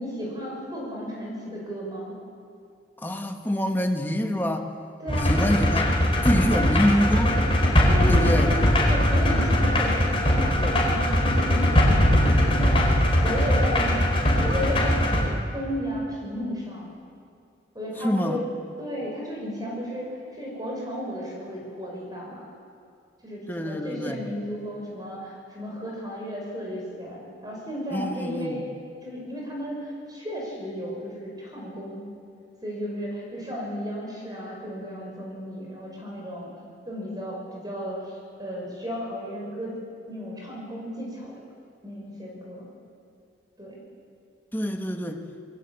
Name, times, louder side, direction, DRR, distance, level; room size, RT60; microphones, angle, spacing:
voice 1, 0.0-2.2 5.0-5.4 6.5-6.8 7.8-8.6 8.9-12.2 12.5-12.8 13.2-15.2 15.5-16.9 17.7-18.4 18.8-22.4 23.2-28.6 29.0-32.1 32.6-36.5 36.9-39.8 40.1-41.4 41.8-42.7 43.6-43.8, equal, 20° right, -2 dB, 5.9 m, -34 dB
voice 2, 3.0-4.8 5.3-7.3 8.1-8.5 18.0-18.4 23.5-24.2 27.9-28.6 44.5-45.3, equal, 10° left, 4 dB, 1.7 m, -26 dB
sound 1, 5.1-15.3, left 1 dB, 30° left, 4.4 m, -21 dB
28.0 x 22.0 x 8.6 m, 2.3 s
head